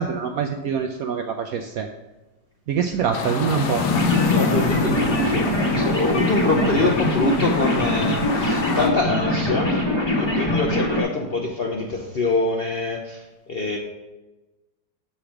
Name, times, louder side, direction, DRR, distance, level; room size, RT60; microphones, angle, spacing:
voice 1, 0.0-1.9 2.7-3.8, right 6 dB, 75° right, 5 dB, 0.8 m, -24 dB
sound 1, 3.1-8.9, left 4 dB, 80° left, 1.5 m, -26 dB
sound 2, 3.9-11.0, left 1 dB, 20° left, 1.0 m, -23 dB
voice 2, 4.3-9.8 10.2-13.8, left 2 dB, 55° left, 0 dB, 0.6 m, -25 dB
7.1 x 4.9 x 5.8 m, 1.1 s
omnidirectional pair, 1.9 m